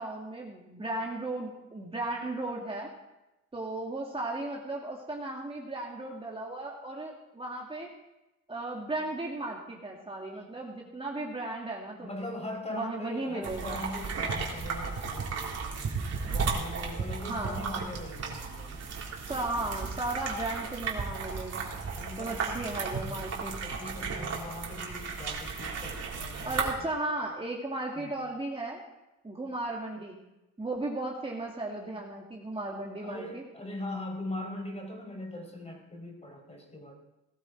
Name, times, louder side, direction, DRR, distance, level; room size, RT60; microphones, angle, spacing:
voice 1, 0.0-2.9 3.5-7.9 8.5-12.3 12.7-13.8 17.3-17.6 19.3-21.7 22.2-23.5 26.5-28.8 29.2-30.2 30.6-33.4, right 2 dB, 20° right, -2 dB, 2.4 m, -35 dB
voice 2, 12.0-16.0 16.3-18.9 22.0-22.7 23.4-26.9 28.0-28.2 33.0-36.9, left 1 dB, 20° left, 2 dB, 4.6 m, -41 dB
sound 1, 13.4-26.7, right 5 dB, 55° right, 3.6 m, -35 dB
18.5 x 13.0 x 4.7 m, 0.96 s
cardioid pair, 90°, 30 cm